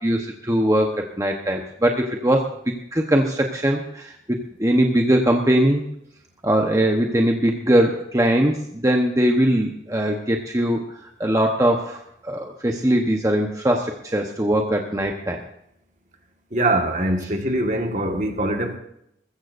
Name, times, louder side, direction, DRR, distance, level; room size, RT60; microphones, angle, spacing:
voice 1, 0.0-0.9 1.2-4.2 4.6-5.8 6.4-15.4, right 1 dB, 20° right, 1.0 m, -21 dB
voice 2, 16.5-18.8, right 1 dB, 45° right, 1.7 m, -23 dB
22.0 x 14.5 x 2.6 m
head